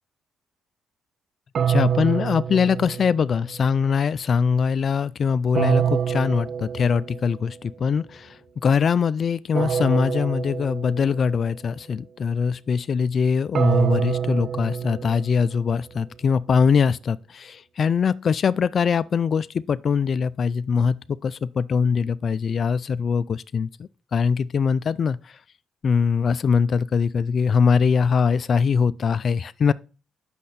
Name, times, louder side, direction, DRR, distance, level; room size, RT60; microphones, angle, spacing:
sound 1, 1.5-3.6 5.5-7.4 9.5-11.4 13.5-15.7, right 8 dB, 55° right, 0.3 m, -26 dB
voice 1, 1.7-23.7 24.1-25.3 25.8-29.7, left 6 dB, 50° left, 0.3 m, -22 dB
8.4 x 6.5 x 4.2 m
cardioid pair, 90°, 0 cm